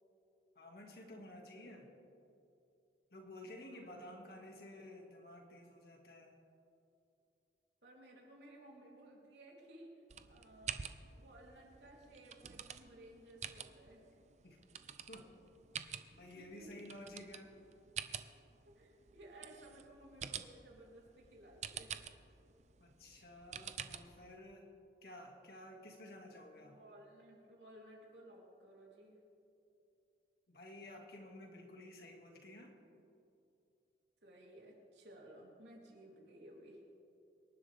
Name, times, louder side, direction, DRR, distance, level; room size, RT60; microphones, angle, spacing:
voice 1, 0.6-1.9 3.1-6.4 14.4-14.6 15.1-15.3 16.1-17.5 22.8-24.7 25.0-26.8 30.5-32.8, left 1 dB, 60° left, 1 dB, 2.1 m, -53 dB
voice 2, 3.7-4.5 7.8-9.9 10.3-10.8 11.2-14.0 16.1-16.7 18.7-21.9 26.6-29.2 34.2-36.8, right 1 dB, 80° right, -2 dB, 3.4 m, -58 dB
sound 1, 10.1-24.4, right 8 dB, 40° right, 0.5 m, -49 dB
25.5 x 11.5 x 3.5 m, 2.6 s
head